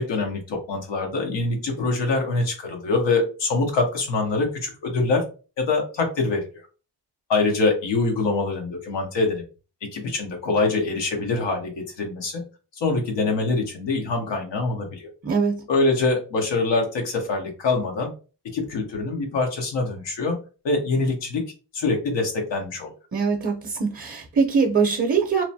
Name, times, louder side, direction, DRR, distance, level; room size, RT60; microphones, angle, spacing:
voice 1, 0.0-5.2 5.6-6.5 7.3-9.4 9.8-12.4 12.8-15.1 15.7-18.1 18.4-20.4 20.6-21.4 21.7-22.9, left 3 dB, 85° left, 2 dB, 1.0 m, -24 dB
voice 2, 15.2-15.6 23.1-25.4, right 5 dB, 35° right, 2 dB, 0.6 m, -22 dB
2.9 x 2.1 x 2.7 m, 0.34 s
cardioid pair, 65°, 42 cm